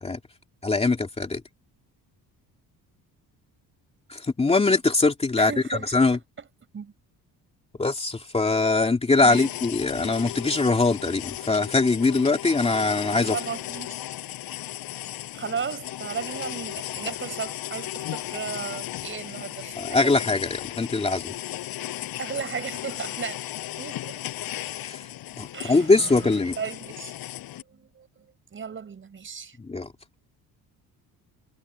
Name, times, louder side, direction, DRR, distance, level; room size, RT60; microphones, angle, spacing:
voice 1, 0.6-1.4 4.1-6.2 7.8-13.4 19.8-21.3 24.8-25.0 25.4-26.6 29.6-29.9, left 3 dB, 15° left, 2.7 m, -22 dB
voice 2, 5.4-5.9 6.4-6.5 6.7-6.9 9.2-9.5 13.3-14.0 15.3-20.0 22.2-23.4 23.8-24.2 25.5-27.1 27.7-28.3 28.5-29.6, right 6 dB, 30° right, 5.1 m, -35 dB
sound 1, 9.3-27.6, left 14 dB, 70° left, 4.9 m, -36 dB
cardioid pair, 145°, 37 cm